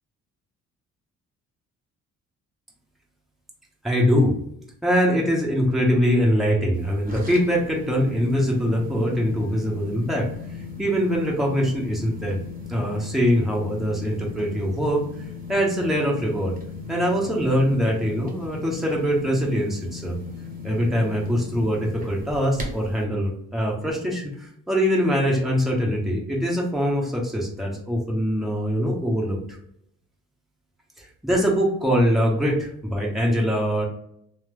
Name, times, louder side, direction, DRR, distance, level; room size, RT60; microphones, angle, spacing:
voice 1, 3.8-4.3 4.8-10.3 10.8-12.4 12.7-15.0 15.5-16.5 16.9-20.2 20.6-29.4 31.0-33.8, equal, ahead, -3 dB, 1.1 m, -23 dB
sound 1, 6.7-23.0, left 4 dB, 30° right, 1.0 m, -37 dB
3.1 x 2.0 x 3.3 m, 0.71 s
cardioid pair, 90°, 30 cm